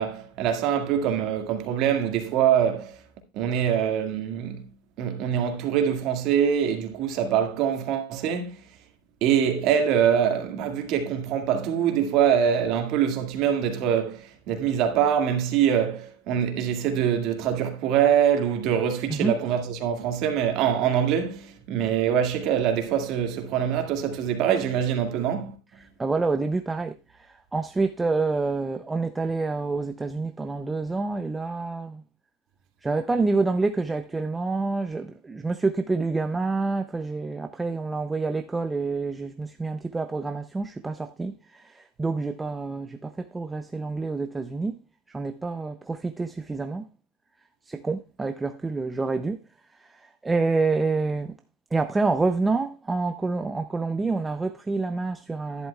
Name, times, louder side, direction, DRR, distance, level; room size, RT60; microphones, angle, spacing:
voice 1, 0.0-3.0 3.3-4.6 5.0-8.6 9.2-25.6, right 8 dB, 45° right, 1.8 m, -24 dB
voice 2, 25.8-32.0 32.8-44.8 45.1-46.9 47.7-49.4 49.8-51.3 51.7-55.7, right 3 dB, 10° right, 0.5 m, -27 dB
11.0 x 11.0 x 2.3 m
supercardioid pair, 140°, 0 cm